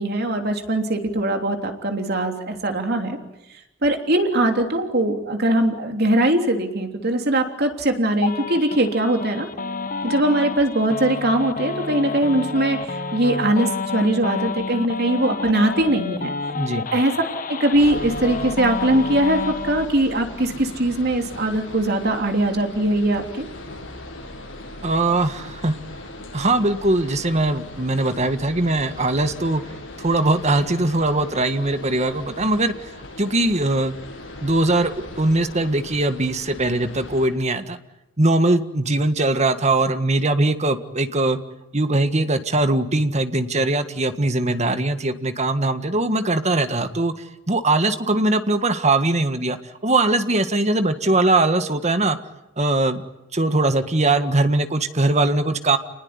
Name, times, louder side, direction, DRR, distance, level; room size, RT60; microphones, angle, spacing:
voice 1, 0.0-3.2 3.8-9.5 10.0-16.3 16.9-17.1 17.5-23.4, right 1 dB, 55° right, 4 dB, 3.3 m, -21 dB
sound 1, 8.2-19.9, left 4 dB, 45° left, 1.1 m, -29 dB
voice 2, 16.5-16.8 24.8-25.8 26.3-29.6 30.0-32.7 33.2-33.9 34.4-37.8 38.2-41.4 41.7-47.1 47.5-49.6 49.8-52.2 52.6-53.0 53.3-55.8, right 2 dB, 35° right, 9 dB, 1.6 m, -21 dB
sound 2, 17.7-37.3, left 1 dB, 75° left, 7.7 m, -39 dB
28.5 x 20.0 x 9.7 m, 0.93 s
head